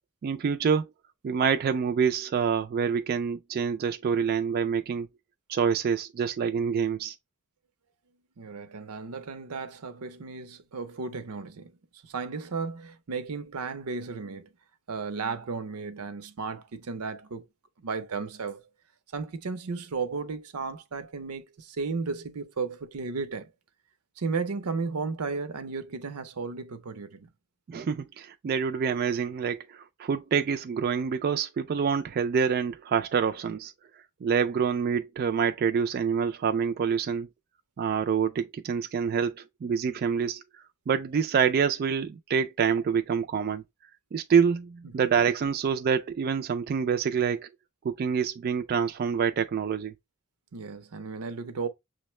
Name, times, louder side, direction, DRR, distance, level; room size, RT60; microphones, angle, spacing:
voice 1, 0.2-0.9 1.2-5.1 5.5-7.2 27.7-33.7 34.2-37.3 37.8-40.4 40.9-43.6 44.1-47.5 47.8-49.9, right 6 dB, 45° right, 0.3 m, -26 dB
voice 2, 8.4-11.7 12.0-14.5 14.9-17.5 17.8-18.6 19.1-23.5 24.2-27.3 44.8-44.9 50.5-51.7, right 4 dB, 90° right, 0.6 m, -34 dB
6.2 x 2.1 x 3.0 m
head